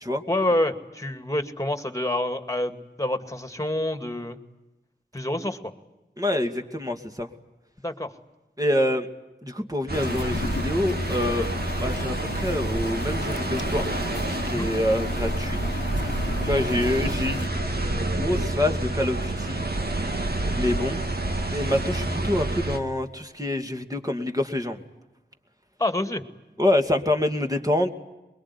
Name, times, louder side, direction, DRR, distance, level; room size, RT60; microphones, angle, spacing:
voice 1, 0.3-4.4 5.1-5.7 7.8-8.1 14.5-14.7 25.8-26.2, left 1 dB, 15° left, 8 dB, 2.2 m, -27 dB
voice 2, 6.2-7.3 8.6-9.1 9.4-11.5 11.8-13.8 14.3-15.6 16.4-17.5 18.0-19.6 20.5-21.0 21.5-24.8 26.6-27.9, left 1 dB, 20° right, 4 dB, 2.4 m, -26 dB
sound 1, 9.9-17.5, left 4 dB, 85° left, 1.1 m, -35 dB
sound 2, 9.9-22.8, right 2 dB, 60° right, 2.5 m, -28 dB
23.5 x 22.0 x 9.8 m, 1.0 s
wide cardioid pair, 55°, 18 cm